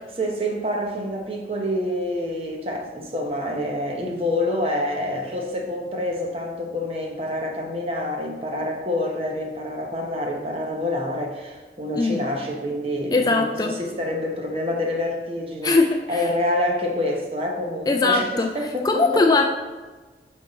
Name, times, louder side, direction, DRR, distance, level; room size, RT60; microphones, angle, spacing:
voice 1, 0.2-15.8 16.1-19.5, left 1 dB, 35° right, 1 dB, 1.0 m, -27 dB
voice 2, 13.1-13.8 15.6-16.2 17.9-18.5 18.8-19.4, left 3 dB, 20° left, 3 dB, 0.3 m, -20 dB
9.4 x 3.7 x 4.0 m, 1.3 s
head